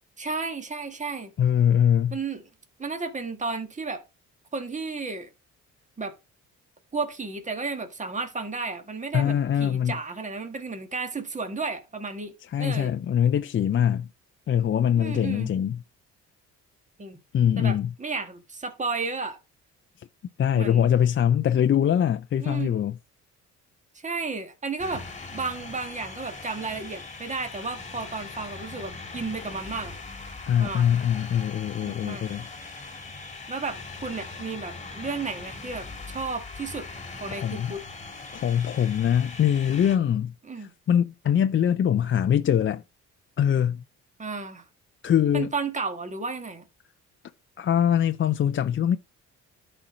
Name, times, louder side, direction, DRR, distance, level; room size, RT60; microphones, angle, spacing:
voice 1, 0.2-1.3 2.1-2.4 2.8-4.0 4.5-5.3 6.0-6.1 6.9-12.3 12.6-12.9 15.0-15.5 17.0-17.2 17.6-19.4 20.5-20.9 22.4-22.7 24.0-25.0 25.3-30.0 30.6-30.9 31.8-32.3 33.5-37.8 40.5-40.7 44.2-44.6 45.3-46.7, right 4 dB, 25° right, 1.8 m, -33 dB
voice 2, 1.4-2.2 9.1-10.0 12.5-14.1 14.5-15.8 17.3-17.9 20.4-22.9 30.5-32.5 37.3-37.7 38.3-40.3 40.6-42.8 43.4-43.8 45.0-45.5 47.6-49.0, left 9 dB, 40° left, 0.5 m, -23 dB
sound 1, 24.8-40.0, left 3 dB, 25° left, 1.9 m, -40 dB
12.0 x 4.5 x 5.1 m
cardioid pair, 90°, 30 cm